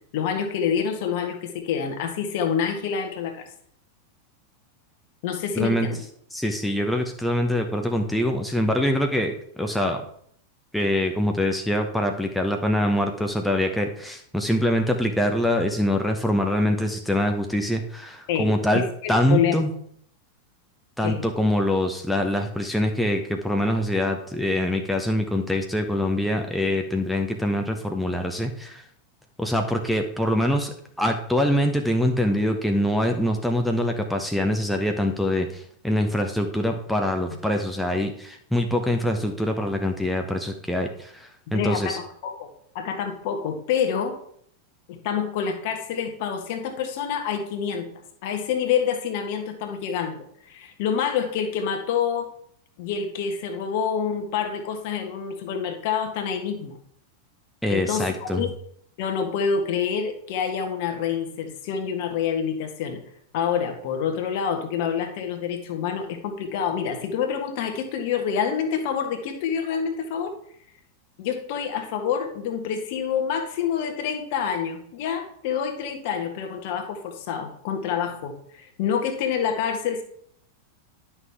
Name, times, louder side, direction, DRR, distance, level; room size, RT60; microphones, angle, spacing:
voice 1, 0.1-3.4 5.2-6.0 18.3-18.5 18.7-19.5 21.0-21.2 41.5-42.5 42.7-44.2 44.9-47.9 48.2-50.2 50.5-52.3 52.8-56.8 57.7-58.5 59.0-63.0 63.3-70.3 71.2-80.0, left 7 dB, 50° left, 6 dB, 1.5 m, -27 dB
voice 2, 5.6-5.9 6.3-10.0 10.7-18.8 19.1-19.7 21.0-28.8 29.4-42.0 57.6-58.4, left 1 dB, ahead, 3 dB, 0.9 m, -24 dB
11.0 x 6.0 x 3.5 m, 0.65 s
figure-of-eight pair, 90°, 0 cm